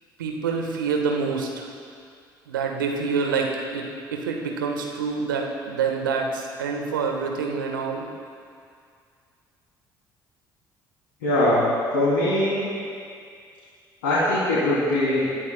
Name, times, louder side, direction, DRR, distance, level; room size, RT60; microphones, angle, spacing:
voice 1, 0.2-1.7 2.5-8.1, right 5 dB, 80° right, 2 dB, 1.4 m, -27 dB
voice 2, 11.2-11.7 11.9-12.8 14.0-15.3, left 1 dB, 75° left, -9 dB, 3.3 m, -21 dB
26.0 x 14.0 x 2.3 m, 2.3 s
figure-of-eight pair, 55°, 11 cm